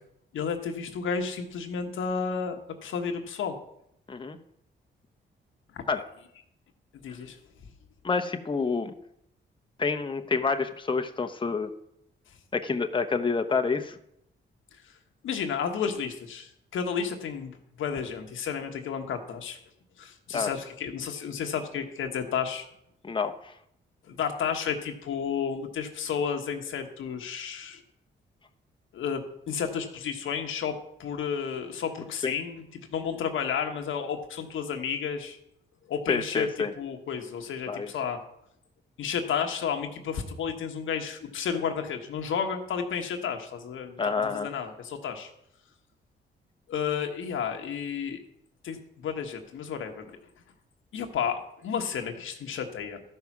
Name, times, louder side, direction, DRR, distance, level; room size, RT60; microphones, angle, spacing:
voice 1, 0.3-2.6 2.8-3.5 5.7-6.0 7.0-7.4 15.2-19.6 20.0-22.7 24.1-27.8 28.9-35.4 35.9-36.5 36.8-38.2 39.0-45.3 46.7-48.2 48.6-50.2 50.9-53.0, left 7 dB, 85° left, 5 dB, 1.3 m, -32 dB
voice 2, 8.0-8.9 9.8-11.7 12.5-14.0 20.3-20.5 23.0-23.5 32.2-32.3 36.1-36.7 37.7-37.9 44.0-44.5, left 4 dB, 25° left, 7 dB, 0.9 m, -28 dB
13.0 x 5.6 x 6.0 m, 0.75 s
cardioid pair, 75°, 20 cm